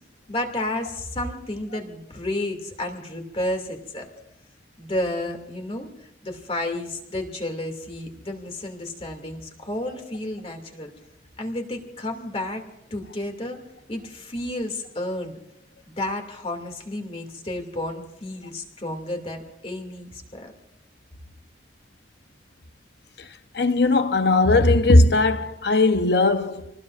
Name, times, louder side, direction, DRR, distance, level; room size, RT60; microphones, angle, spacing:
voice 1, 0.3-4.1 4.8-10.9 11.4-12.7 12.9-13.6 13.9-15.4 15.9-20.5, left 1 dB, 35° left, 2.4 m, -31 dB
voice 2, 23.5-26.7, left 2 dB, 70° left, 0.9 m, -18 dB
27.5 x 19.5 x 2.5 m
head